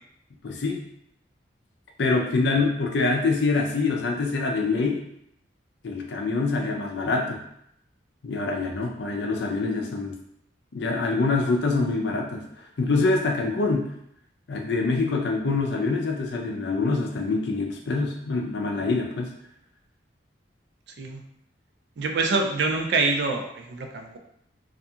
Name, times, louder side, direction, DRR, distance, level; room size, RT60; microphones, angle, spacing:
voice 1, 0.4-0.8 2.0-5.0 5.8-7.4 8.2-10.2 10.7-12.4 12.8-13.9 14.5-19.3, left 3 dB, 65° left, 2 dB, 0.4 m, -25 dB
voice 2, 22.0-24.2, right 3 dB, 65° right, 3 dB, 0.4 m, -25 dB
2.7 x 2.5 x 2.3 m, 0.75 s
head